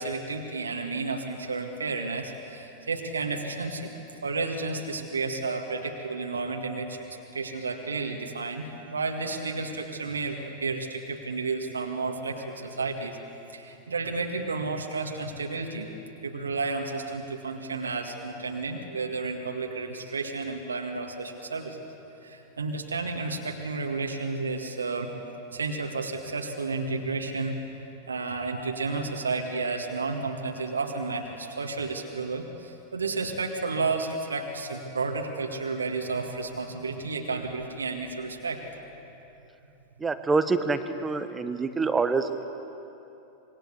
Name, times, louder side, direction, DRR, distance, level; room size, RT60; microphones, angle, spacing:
voice 1, 0.0-4.0 4.2-13.2 13.5-15.9 16.2-21.9 22.2-25.1 25.5-38.6, right 3 dB, 75° right, 2 dB, 2.0 m, -32 dB
voice 2, 40.0-42.4, right 4 dB, 15° right, 10 dB, 1.4 m, -26 dB
26.0 x 22.0 x 8.4 m, 3.0 s
figure-of-eight pair, 90°, 0 cm